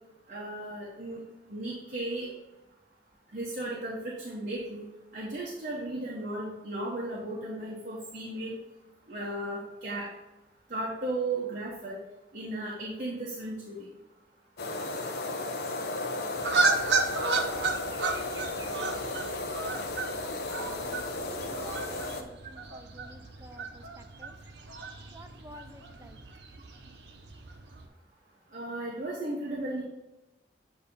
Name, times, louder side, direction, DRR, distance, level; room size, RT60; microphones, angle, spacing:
voice 1, 0.3-1.2 1.5-2.3 3.3-4.8 5.1-8.6 9.1-10.1 10.7-12.0 12.3-13.8 28.5-29.8, right 2 dB, 45° right, -5 dB, 1.1 m, -35 dB
sound 1, 14.6-22.2, left 2 dB, 60° left, 0.7 m, -34 dB
sound 2, 16.4-27.9, right 3 dB, 80° right, 0.8 m, -33 dB
voice 2, 19.9-24.4 25.1-26.2, right 1 dB, 15° right, 6 dB, 0.4 m, -51 dB
8.5 x 2.9 x 5.3 m, 1.0 s
head